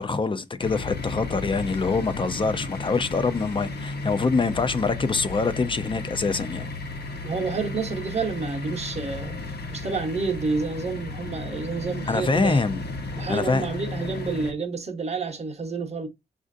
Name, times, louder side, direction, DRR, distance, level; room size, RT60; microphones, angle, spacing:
voice 1, 0.0-6.7 12.1-12.8 13.1-13.7, left 4 dB, 30° left, 0.4 m, -25 dB
sound 1, 0.6-14.5, left 3 dB, 70° left, 0.9 m, -34 dB
voice 2, 7.2-9.4 9.7-12.6 13.1-16.1, right 4 dB, 40° right, 0.8 m, -29 dB
6.1 x 2.5 x 2.5 m
wide cardioid pair, 155°, 17 cm